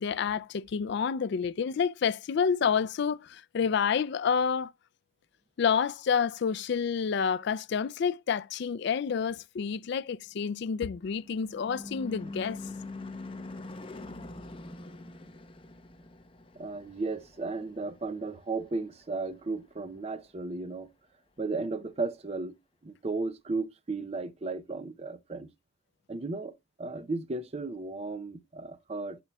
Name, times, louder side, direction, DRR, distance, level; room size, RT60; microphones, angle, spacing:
voice 1, 0.0-4.7 5.6-12.6, left 6 dB, 55° left, 0.3 m, -29 dB
Car passing by / Truck / Engine, 10.4-19.1, left 2 dB, 25° left, 0.8 m, -44 dB
voice 2, 16.6-20.9 21.4-22.6 22.8-25.5 26.1-29.2, right 3 dB, 30° right, 0.5 m, -35 dB
11.0 x 5.9 x 2.2 m
head